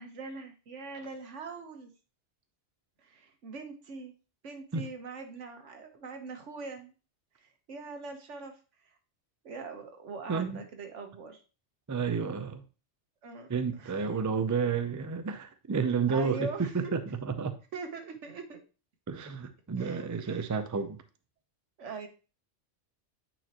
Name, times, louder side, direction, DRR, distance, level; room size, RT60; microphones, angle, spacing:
voice 1, 0.0-1.9 3.0-4.1 4.4-6.9 7.4-8.6 8.8-9.0 9.4-11.4 13.2-13.5 13.8-14.0 16.1-16.9 17.7-18.6 19.8-20.5 21.8-22.1, right 4 dB, 85° right, 1.4 m, -42 dB
voice 2, 10.3-10.6 11.9-12.6 13.5-16.5 16.7-17.6 19.1-21.0, right 5 dB, 30° right, 0.3 m, -31 dB
8.9 x 4.6 x 2.9 m
omnidirectional pair, 1.2 m